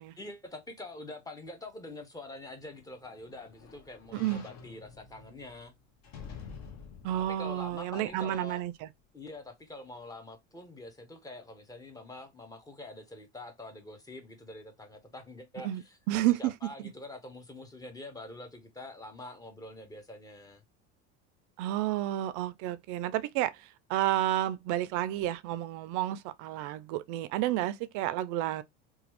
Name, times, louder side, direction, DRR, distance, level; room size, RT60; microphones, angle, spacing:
voice 1, 0.2-5.7 7.2-8.6 9.1-20.6, left 2 dB, 10° left, 0.7 m, -45 dB
sound 1, 2.5-8.7 9.2-9.3, left 6 dB, 45° left, 0.8 m, -50 dB
voice 2, 4.1-4.4 7.0-8.9 15.6-15.8 16.1-16.5 16.8-16.9 21.6-23.6 23.9-28.6, right 13 dB, 60° right, 0.4 m, -31 dB
3.0 x 2.3 x 2.9 m
supercardioid pair, 110°, 36 cm